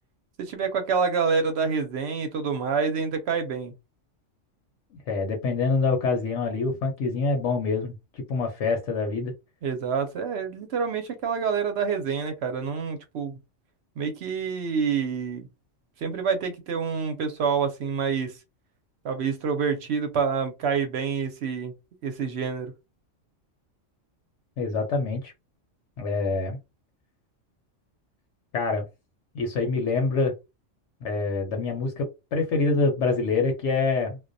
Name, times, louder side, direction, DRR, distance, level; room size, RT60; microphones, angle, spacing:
voice 1, 0.4-3.7 9.6-13.3 14.0-15.5 16.0-18.4 19.0-21.7 22.0-22.7, right 6 dB, 65° right, 0.8 m, -27 dB
voice 2, 5.1-9.3 24.6-25.3 26.0-26.6 28.5-28.9 29.3-30.3 31.0-34.2, left 3 dB, 75° left, 0.9 m, -26 dB
2.2 x 2.1 x 2.5 m
omnidirectional pair, 1.3 m